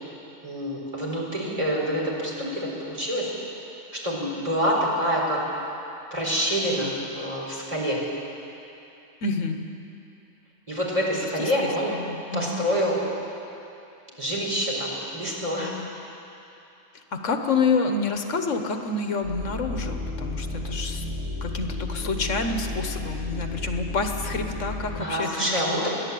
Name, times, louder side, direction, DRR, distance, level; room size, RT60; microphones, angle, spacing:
voice 1, 0.4-3.6 4.0-5.4 6.1-8.0 10.7-11.9 12.3-13.0 14.2-15.7 25.0-25.9, equal, 25° right, -4 dB, 4.6 m, -26 dB
voice 2, 9.2-9.6 11.4-12.6 16.9-21.1 21.4-25.9, left 4 dB, 75° left, 5 dB, 1.6 m, -28 dB
sound 1, 19.2-25.0, left 2 dB, 55° right, 2.6 m, -32 dB
29.0 x 11.0 x 8.5 m, 2.8 s
omnidirectional pair, 1.3 m